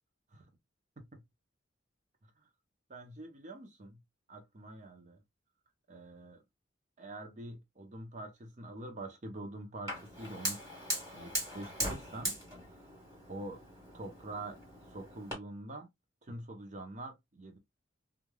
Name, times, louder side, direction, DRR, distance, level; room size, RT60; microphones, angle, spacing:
voice 1, 2.9-4.0 4.3-5.2 5.9-6.4 7.0-10.6 11.1-12.4 12.7-12.8 13.3-13.6 13.9-14.6 14.9-15.9 16.2-17.6, right 2 dB, 40° right, 0.7 m, -45 dB
Fire, 9.9-15.3, equal, 15° right, 1.8 m, -40 dB
3.2 x 2.4 x 2.2 m
head